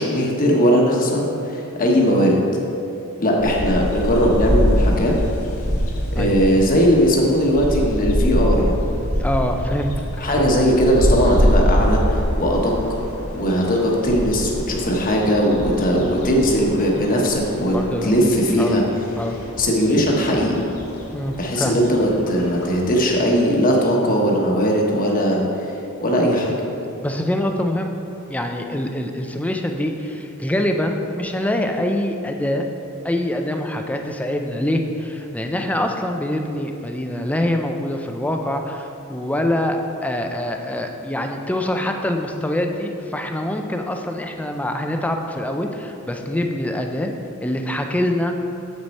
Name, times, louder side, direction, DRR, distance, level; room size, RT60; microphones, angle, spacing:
voice 1, 0.0-2.4 3.2-5.1 6.1-8.8 10.2-12.7 13.3-17.8 18.0-18.8 19.6-20.6 21.4-25.4 26.0-26.5, equal, 40° left, -1 dB, 1.1 m, -19 dB
sound 1, 3.4-23.2, equal, 75° left, 1.4 m, -25 dB
voice 2, 9.2-10.1 10.4-10.5 17.7-18.1 18.6-18.8 19.2-19.4 21.1-21.7 27.0-27.9 28.3-32.7 33.0-47.1 47.4-48.4, left 1 dB, 5° left, 4 dB, 0.4 m, -24 dB
7.5 x 6.4 x 4.2 m, 2.8 s
head